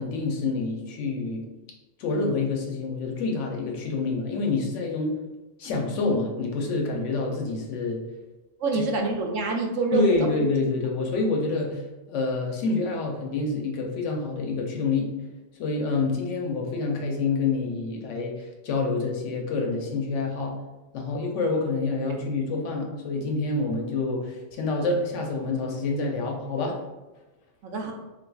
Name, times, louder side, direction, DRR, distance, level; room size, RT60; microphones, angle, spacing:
voice 1, 0.0-1.4 2.0-5.1 5.6-8.0 8.7-8.8 9.9-15.1 15.6-20.6 20.9-26.8, left 3 dB, 75° left, 1 dB, 1.0 m, -27 dB
voice 2, 8.6-10.2 27.6-27.9, right 3 dB, 80° right, 2 dB, 0.9 m, -26 dB
3.9 x 2.5 x 2.2 m, 1.1 s
omnidirectional pair, 1.3 m